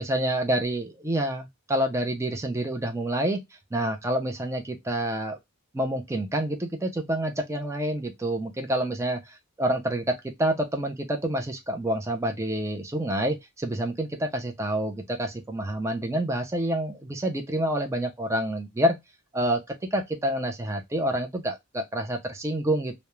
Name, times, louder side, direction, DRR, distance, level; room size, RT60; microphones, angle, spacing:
voice 1, 0.0-3.4 3.7-5.4 5.7-19.0 19.3-19.6 19.9-23.0, right 1 dB, 15° right, 0.3 m, -28 dB
2.3 x 2.0 x 2.9 m
head